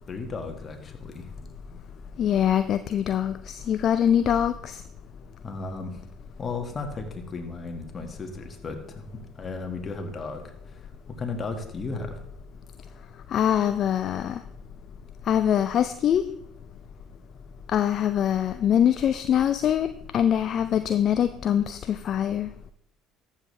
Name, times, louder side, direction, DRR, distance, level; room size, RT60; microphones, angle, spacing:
voice 1, 0.1-1.3 5.4-6.0 6.4-10.9 11.2-12.2 13.2-13.3, left 3 dB, 35° left, 4 dB, 1.8 m, -35 dB
voice 2, 2.2-4.8 13.3-14.4 15.3-16.2 17.7-19.9 20.1-22.5, left 9 dB, 50° left, 11 dB, 0.4 m, -23 dB
13.5 x 7.4 x 3.3 m, 0.72 s
hypercardioid pair, 65°, 0 cm